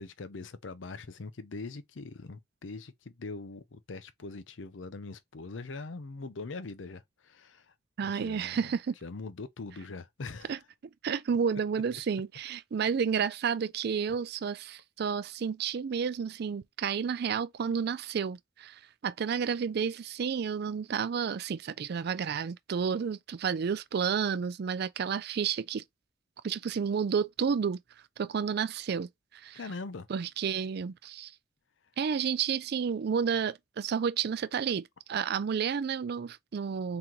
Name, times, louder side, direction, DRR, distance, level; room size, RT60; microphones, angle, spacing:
voice 1, 0.0-7.7 8.1-8.7 9.0-10.6 14.1-14.2 29.5-30.1, left 3 dB, 85° left, 0.6 m, -42 dB
voice 2, 8.0-8.9 10.5-10.6 11.0-25.8 26.4-27.8 28.2-29.1 29.4-29.6 30.1-31.3 32.0-37.0, right 6 dB, 60° right, 0.4 m, -31 dB
3.8 x 2.9 x 4.5 m
head